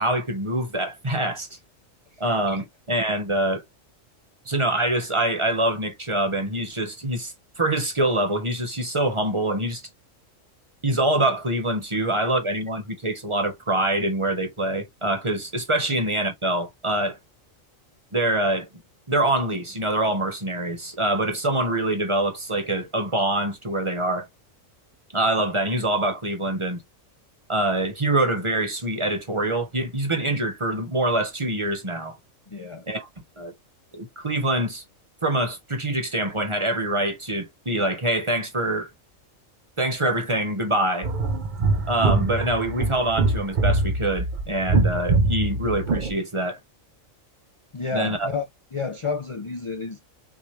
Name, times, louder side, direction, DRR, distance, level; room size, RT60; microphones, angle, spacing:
voice 1, 0.0-1.5 2.2-3.6 4.5-9.8 10.8-17.2 18.1-18.7 19.1-24.3 25.1-26.8 27.5-32.2 32.9-33.1 33.4-33.5 33.9-34.8 35.2-38.9 39.8-41.1 41.9-46.6 47.9-48.3, right 1 dB, 25° right, 1.0 m, -25 dB
voice 2, 32.5-32.8 47.7-48.4 48.7-50.0, left 4 dB, 55° left, 0.3 m, -30 dB
sound 1, 41.0-46.1, right 3 dB, 50° right, 0.6 m, -23 dB
6.1 x 2.4 x 3.1 m
omnidirectional pair, 1.4 m